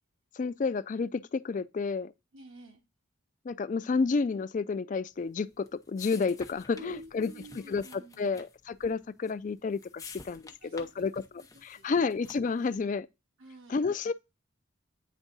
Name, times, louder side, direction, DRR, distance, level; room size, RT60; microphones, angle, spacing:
voice 1, 0.4-2.1 3.5-7.3 7.7-7.8 8.2-11.2 11.6-13.1 13.7-14.1, left 4 dB, 40° left, 0.3 m, -30 dB
voice 2, 2.3-2.8 6.7-8.4 10.6-11.1 11.5-12.2 13.4-13.9, right 1 dB, 80° right, 1.6 m, -50 dB
sound 1, 5.2-12.7, left 4 dB, 15° left, 0.7 m, -51 dB
9.2 x 3.6 x 4.0 m
head